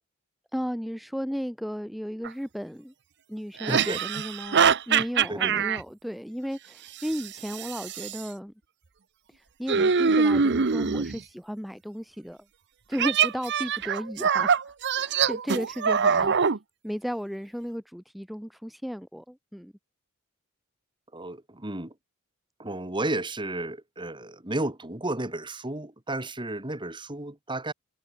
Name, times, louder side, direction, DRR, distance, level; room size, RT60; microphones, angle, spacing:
voice 1, 0.5-2.9 3.3-8.5 9.3-12.5 12.9-16.4 16.8-19.7, equal, ahead, 1.1 m, -34 dB
sound 1, 2.2-2.3 3.6-5.8 7.0-8.2 9.7-11.2 12.9-16.6, right 6 dB, 50° right, 0.9 m, -24 dB
voice 2, 3.7-4.0 5.3-5.6 21.1-21.9 22.6-27.7, right 2 dB, 20° right, 2.4 m, -32 dB
head